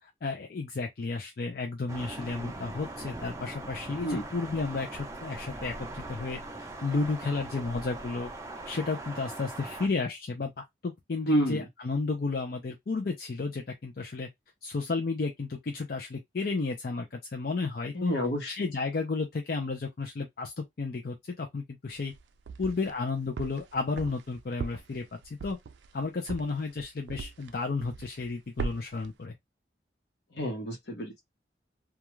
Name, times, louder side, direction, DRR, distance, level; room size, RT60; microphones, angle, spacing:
voice 1, 0.0-8.3 8.6-14.3 14.6-18.1 18.5-22.1 22.6-25.6 25.9-29.3, left 4 dB, 55° left, 0.5 m, -33 dB
Thunder, 1.9-9.9, right 2 dB, 15° right, 0.5 m, -41 dB
voice 2, 11.2-11.6 17.9-18.5 30.3-31.2, equal, 75° left, 1.1 m, -29 dB
sound 1, 21.9-23.0 23.4-27.5 27.8-28.3 28.6-29.1, right 4 dB, 80° right, 0.4 m, -38 dB
2.3 x 2.3 x 3.0 m
head